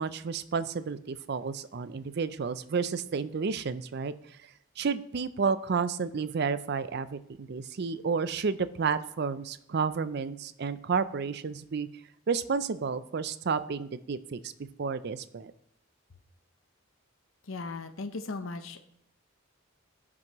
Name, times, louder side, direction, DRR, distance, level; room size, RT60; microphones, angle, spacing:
voice 1, 0.0-4.4 4.8-11.9 12.3-14.5 14.8-15.5, right 5 dB, 55° right, 14 dB, 0.5 m, -31 dB
voice 2, 17.4-18.8, left 3 dB, 75° left, 8 dB, 0.8 m, -37 dB
16.5 x 6.1 x 3.0 m, 0.74 s
head